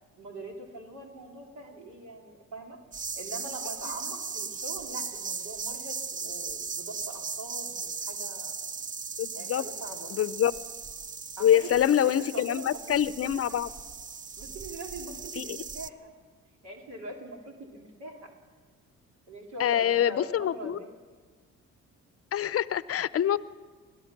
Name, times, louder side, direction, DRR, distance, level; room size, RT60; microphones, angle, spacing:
voice 1, 0.2-2.8 3.2-8.6 9.3-10.2 11.4-13.1 13.5-13.6 14.4-16.1 16.6-18.3 19.3-20.9, right 2 dB, 75° right, 1 dB, 2.8 m, -42 dB
sound 1, 2.9-15.9, right 5 dB, 25° right, 0.5 m, -38 dB
voice 2, 9.2-9.6 10.1-10.5 11.4-13.7 15.4-15.6 19.6-20.8 22.3-23.4, left 10 dB, 50° left, 17 dB, 0.6 m, -25 dB
25.5 x 17.0 x 6.0 m, 1.5 s
cardioid pair, 90°, 30 cm